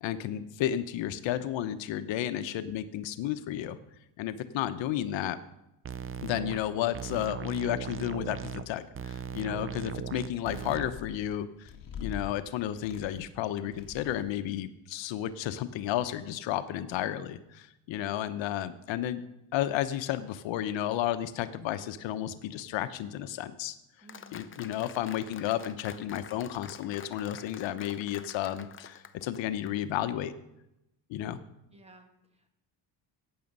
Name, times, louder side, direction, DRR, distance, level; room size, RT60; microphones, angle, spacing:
voice 1, 0.0-3.8 4.2-5.4 6.2-19.2 19.5-23.7 24.3-30.3 31.1-31.4, left 12 dB, 75° left, 11 dB, 1.0 m, -32 dB
sound 1, 5.8-6.6 6.9-8.7 8.9-10.9, right 7 dB, 30° right, 0.6 m, -38 dB
sound 2, 9.3-10.0 10.4-12.3 12.7-13.4 13.7-14.4, left 6 dB, 45° left, 2.0 m, -44 dB
voice 2, 24.0-24.7 31.7-32.5, right 2 dB, 15° right, 5 dB, 2.1 m, -56 dB
Applause, 24.1-30.0, left 7 dB, 25° left, 0.8 m, -48 dB
15.0 x 9.7 x 5.4 m, 0.87 s
cardioid pair, 105°, 45 cm